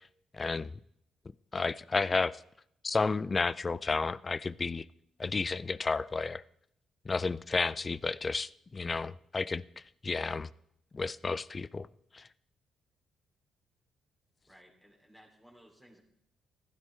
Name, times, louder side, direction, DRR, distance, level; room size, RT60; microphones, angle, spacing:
voice 1, 0.3-0.7 1.5-2.4 2.8-4.9 5.2-6.4 7.1-9.6 10.0-10.5 10.9-11.9 12.1-12.2, left 4 dB, 30° left, 0.4 m, -31 dB
voice 2, 14.5-16.0, equal, 5° left, 2.9 m, -58 dB
15.5 x 13.0 x 3.3 m
cardioid pair, 90°, 0 cm